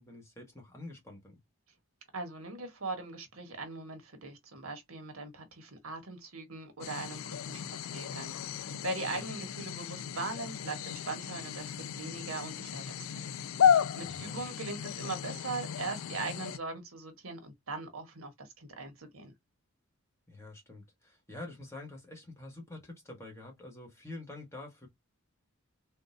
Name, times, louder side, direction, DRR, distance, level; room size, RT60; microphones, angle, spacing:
voice 1, 0.0-1.4 9.1-9.3 14.0-14.4 20.3-24.9, left 2 dB, 10° left, 1.2 m, -47 dB
voice 2, 2.1-19.3, right 3 dB, 75° right, 1.2 m, -40 dB
sound 1, 6.8-16.6, left 8 dB, 65° left, 0.3 m, -33 dB
3.8 x 2.5 x 2.5 m
head